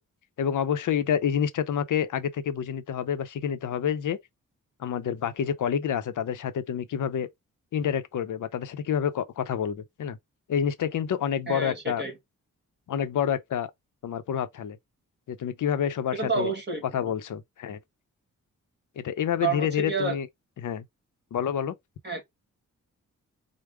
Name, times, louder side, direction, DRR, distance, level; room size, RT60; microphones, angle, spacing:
voice 1, 0.4-4.2 4.8-7.3 7.7-10.2 10.5-12.0 12.9-13.7 14.0-14.8 15.3-16.5 16.9-17.8 19.0-20.3 20.6-20.8 21.3-21.7, left 8 dB, 65° left, 0.6 m, -28 dB
voice 2, 11.5-12.1 16.1-17.1 19.4-20.2 22.0-22.2, right 4 dB, 30° right, 1.7 m, -29 dB
4.8 x 2.1 x 3.3 m
cardioid pair, 80°, 32 cm